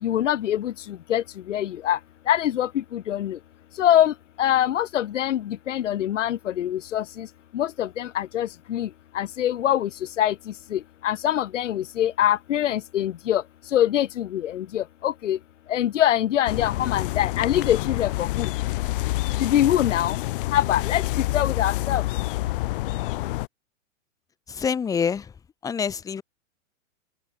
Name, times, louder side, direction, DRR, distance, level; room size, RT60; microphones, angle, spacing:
voice 1, 0.0-2.0 2.3-3.4 3.7-15.4 15.7-18.5 19.4-20.2 20.5-22.0, left 11 dB, 65° left, 4.4 m, -24 dB
sound 1, 16.5-23.5, left 18 dB, 40° left, 6.2 m, -27 dB
voice 2, 24.6-25.2 25.6-26.2, left 6 dB, 10° left, 1.8 m, -26 dB
supercardioid pair, 170°, 39 cm